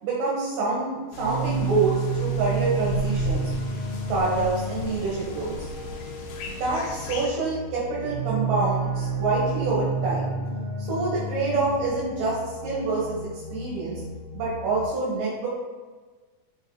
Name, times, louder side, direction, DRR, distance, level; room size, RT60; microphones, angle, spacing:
voice 1, 0.0-3.5 4.1-5.7 6.4-10.3 10.8-12.4 12.6-14.0 14.3-15.5, right 3 dB, 65° right, -6 dB, 2.7 m, -27 dB
sound 1, 1.1-7.3, left 1 dB, 75° left, 2.4 m, -36 dB
sound 2, 1.2-14.8, right 4 dB, 40° right, 2.1 m, -31 dB
5.4 x 5.4 x 3.9 m, 1.4 s
omnidirectional pair, 4.3 m